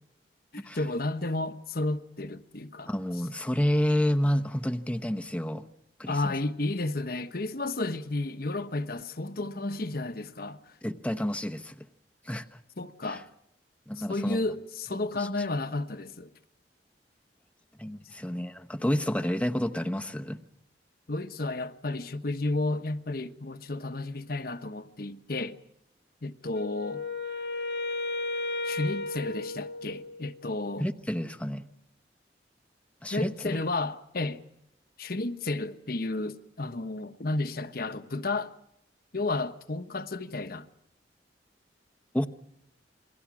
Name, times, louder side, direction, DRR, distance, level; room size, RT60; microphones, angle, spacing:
voice 1, 0.5-2.9 6.1-10.6 12.8-13.3 14.0-16.3 21.1-25.6 26.2-27.0 28.6-30.8 33.1-34.4 35.0-38.5 39.1-40.7, left 2 dB, 55° left, 1.2 m, -32 dB
voice 2, 2.9-5.7 6.0-6.3 10.8-11.7 12.2-12.6 13.0-13.2 13.9-14.4 15.0-15.3 17.8-20.4 30.8-31.6 33.0-33.6 42.1-42.3, equal, 10° left, 1.0 m, -29 dB
Wind instrument woodwind instrument, 26.5-30.4, left 3 dB, 75° left, 1.9 m, -34 dB
28.5 x 22.0 x 6.2 m
head